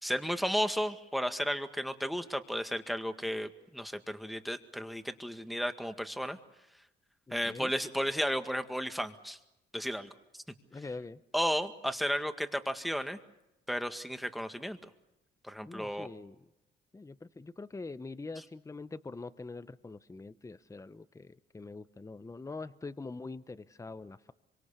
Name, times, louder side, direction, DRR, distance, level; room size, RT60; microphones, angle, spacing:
voice 1, 0.0-6.4 7.3-9.4 9.7-10.1 11.3-13.2 13.7-14.8 15.5-16.1, equal, ahead, 8 dB, 1.8 m, -33 dB
voice 2, 7.3-7.7 10.7-11.2 15.6-16.4 16.9-24.3, left 3 dB, 15° left, 13 dB, 0.9 m, -44 dB
26.0 x 24.5 x 6.9 m, 0.92 s
cardioid pair, 90°, 20 cm